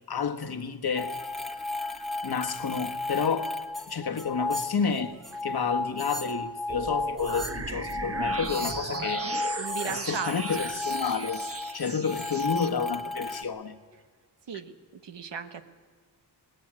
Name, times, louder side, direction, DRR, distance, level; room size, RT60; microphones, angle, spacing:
voice 1, 0.1-1.1 2.2-3.5 3.9-5.2 5.4-9.3 9.8-11.4 11.7-13.8, left 6 dB, 65° left, 1.4 m, -30 dB
sound 1, 1.0-13.4, left 2 dB, ahead, 1.4 m, -34 dB
sound 2, 6.7-12.7, right 3 dB, 35° right, 1.3 m, -36 dB
voice 2, 9.6-10.6 14.5-14.7 15.0-15.6, right 7 dB, 85° right, 1.3 m, -36 dB
18.5 x 18.5 x 8.9 m
wide cardioid pair, 80°, 41 cm